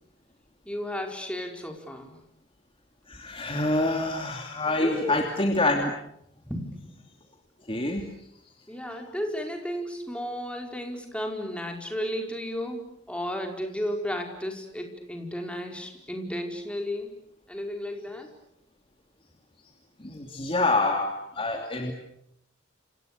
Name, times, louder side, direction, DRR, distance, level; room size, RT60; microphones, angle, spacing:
voice 1, 0.6-2.2 4.7-5.2 6.4-7.0 8.7-17.2 17.5-18.3, equal, 5° left, 3 dB, 4.9 m, -33 dB
voice 2, 3.1-5.9 7.7-8.1 20.0-21.9, left 2 dB, 30° left, 3 dB, 2.8 m, -26 dB
29.5 x 28.5 x 6.9 m, 0.75 s
head